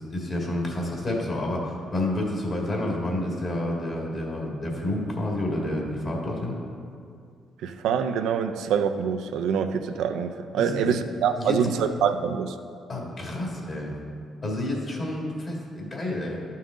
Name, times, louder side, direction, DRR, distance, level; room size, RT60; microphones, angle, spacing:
voice 1, 0.0-6.6 10.6-11.0 11.3-11.6 12.9-14.0 14.4-16.4, left 1 dB, 40° left, -1 dB, 2.0 m, -29 dB
voice 2, 7.6-12.6, right 7 dB, 85° right, 8 dB, 0.4 m, -25 dB
11.5 x 5.5 x 3.7 m, 2.3 s
cardioid pair, 90°, 0 cm